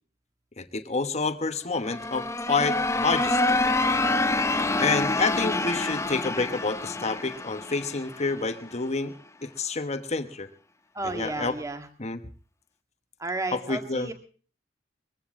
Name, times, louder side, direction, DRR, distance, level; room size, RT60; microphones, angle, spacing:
voice 1, 0.6-3.6 4.8-9.1 9.4-10.5 11.0-11.5 12.0-12.2 13.7-14.1, left 3 dB, 35° left, 9 dB, 1.3 m, -28 dB
sound 1, 1.8-8.6, left 2 dB, 15° left, 0.8 m, -27 dB
voice 2, 10.9-11.9 13.2-14.1, right 2 dB, 15° right, 7 dB, 2.1 m, -32 dB
21.5 x 15.0 x 3.7 m, 0.40 s
head